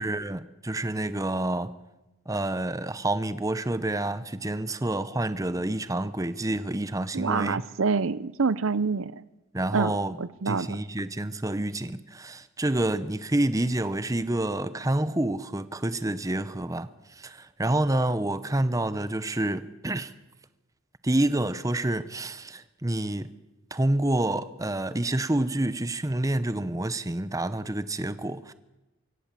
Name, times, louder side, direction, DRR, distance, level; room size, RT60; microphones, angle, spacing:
voice 1, 0.0-1.7 2.3-7.6 9.5-10.2 10.5-20.1 21.0-23.3 23.7-28.5, right 1 dB, 15° right, 0.7 m, -28 dB
voice 2, 7.1-9.2 9.7-9.9 10.2-10.8, right 4 dB, 65° right, 0.6 m, -26 dB
24.0 x 16.0 x 7.4 m
head